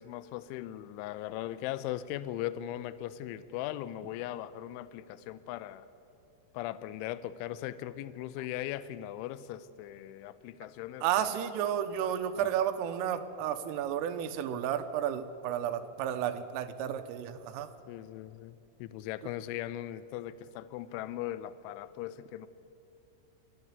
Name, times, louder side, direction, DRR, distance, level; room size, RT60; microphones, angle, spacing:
voice 1, 0.0-5.9 6.5-11.5 12.4-12.5 17.9-22.5, left 13 dB, 85° left, 14 dB, 3.0 m, -39 dB
voice 2, 11.0-17.7, right 10 dB, 85° right, 9 dB, 3.6 m, -32 dB
25.0 x 12.5 x 9.5 m, 2.9 s
omnidirectional pair, 5.7 m